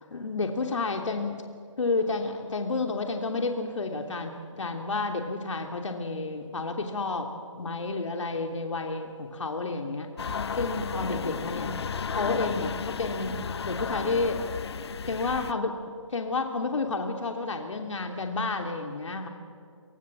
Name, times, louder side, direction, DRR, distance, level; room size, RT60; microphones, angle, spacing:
voice 1, 0.1-1.4 1.8-10.1 10.6-11.7 12.1-14.4 15.1-15.8 16.1-19.3, left 3 dB, 70° left, 4 dB, 3.0 m, -30 dB
sound 1, 10.2-15.5, left 6 dB, 55° left, 1.1 m, -33 dB
29.5 x 25.5 x 7.4 m, 2.3 s
figure-of-eight pair, 155°, 16 cm